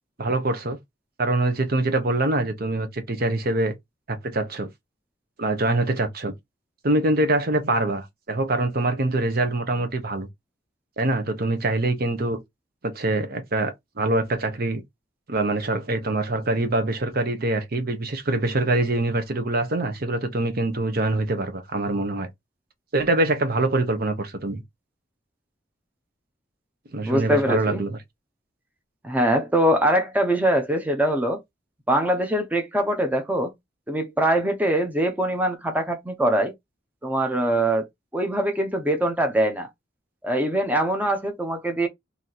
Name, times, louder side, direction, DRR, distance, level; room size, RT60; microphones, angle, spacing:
voice 1, 0.2-0.8 1.2-3.7 4.1-4.7 5.4-6.3 6.8-10.3 11.0-12.4 12.8-14.8 15.3-22.3 22.9-24.6 26.9-28.0, right 2 dB, 55° right, 0.9 m, -24 dB
voice 2, 27.0-27.8 29.0-31.4 31.9-33.5 33.9-36.5 37.0-37.8 38.1-39.7 40.2-41.9, right 1 dB, 10° right, 0.7 m, -23 dB
3.1 x 2.7 x 4.0 m
head